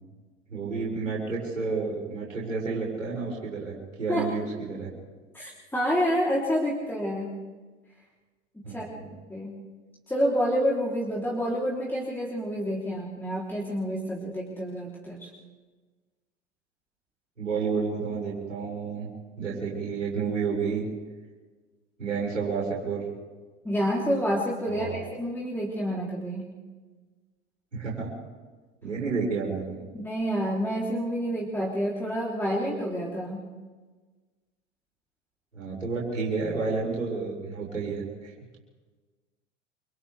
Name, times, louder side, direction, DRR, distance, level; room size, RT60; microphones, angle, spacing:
voice 1, 0.5-4.9 8.6-9.1 17.4-19.1 19.4-20.9 22.0-23.1 24.7-25.0 27.7-28.1 28.8-29.9 35.5-38.3, right 4 dB, 90° right, -4 dB, 6.0 m, -30 dB
voice 2, 5.3-7.3 8.7-8.8 9.3-9.6 10.1-15.3 23.6-26.4 29.9-33.4, equal, 5° left, -5 dB, 3.6 m, -28 dB
29.5 x 25.0 x 3.6 m, 1.4 s
figure-of-eight pair, 80°, 37 cm